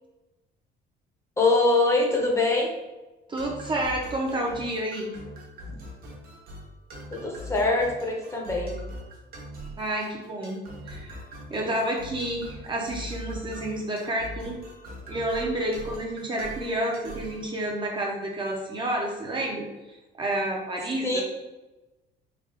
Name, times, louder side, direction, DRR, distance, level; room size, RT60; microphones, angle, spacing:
voice 1, 1.4-2.7 5.7-5.8 7.1-8.8 21.0-21.2, left 2 dB, 15° left, -1 dB, 0.6 m, -23 dB
voice 2, 3.3-5.1 9.8-10.6 10.9-11.2 11.5-14.6 15.1-21.2, right 1 dB, 25° right, -1 dB, 0.5 m, -30 dB
sound 1, 3.4-17.4, equal, 55° right, 0.8 m, -42 dB
3.3 x 2.2 x 3.6 m, 1.1 s
cardioid pair, 145°, 19 cm